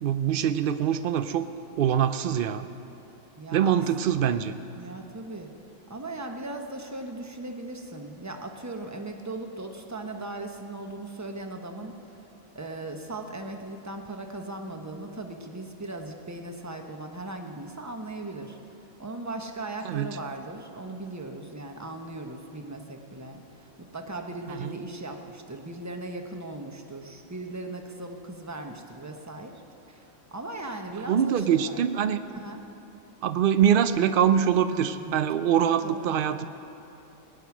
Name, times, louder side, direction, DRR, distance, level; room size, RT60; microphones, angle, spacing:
voice 1, 0.0-1.5 1.8-2.7 3.5-4.5 19.8-20.1 24.6-24.7 31.1-32.2 33.2-36.4, right 9 dB, 80° right, 12 dB, 0.4 m, -24 dB
voice 2, 3.4-3.8 4.8-5.5 5.9-12.0 12.5-18.6 19.0-29.6 29.9-30.0 30.3-31.8 32.3-32.6 35.0-35.2 35.8-36.0, right 2 dB, 15° right, 4 dB, 0.9 m, -38 dB
19.5 x 10.0 x 6.0 m, 2.9 s
omnidirectional pair, 1.5 m